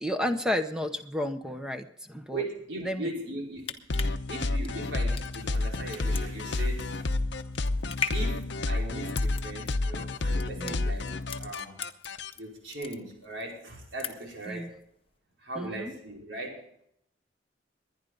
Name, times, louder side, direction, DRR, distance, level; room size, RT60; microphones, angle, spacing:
voice 1, 0.0-2.4 2.8-3.1 10.6-10.9 14.5-14.7 15.6-15.9, left 1 dB, 5° right, 7 dB, 0.8 m, -32 dB
voice 2, 2.3-3.8 4.3-7.1 8.1-11.1 11.4-11.8 12.4-14.7 15.4-16.6, right 2 dB, 85° right, -1 dB, 4.9 m, -39 dB
sound 1, 3.4-12.4 12.7-13.4 13.7-14.4 14.8-14.9, left 6 dB, 30° left, 1.0 m, -39 dB
sound 2, 3.9-12.3, left 2 dB, 70° left, 0.8 m, -30 dB
22.0 x 10.5 x 3.9 m, 0.72 s
head